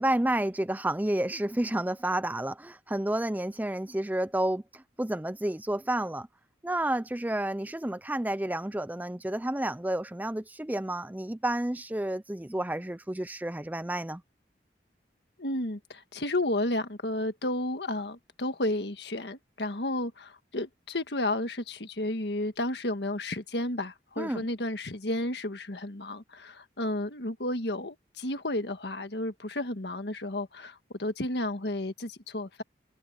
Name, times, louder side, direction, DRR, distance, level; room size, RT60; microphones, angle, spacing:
voice 1, 0.0-6.3 6.6-14.2 24.2-24.5, right 1 dB, 10° right, 0.5 m, -30 dB
voice 2, 15.4-32.6, left 1 dB, 70° left, 1.6 m, -32 dB
head